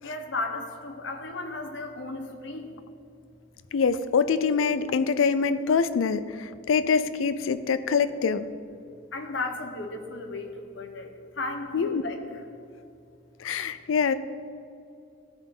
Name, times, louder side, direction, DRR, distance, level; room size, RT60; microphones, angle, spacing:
voice 1, 0.0-2.7 9.1-11.1 11.4-12.2, left 3 dB, 70° left, 5 dB, 0.9 m, -34 dB
voice 2, 3.7-8.5 11.7-12.0 13.4-14.1, left 5 dB, 90° left, 13 dB, 0.4 m, -24 dB
13.5 x 5.7 x 3.7 m, 2.5 s
head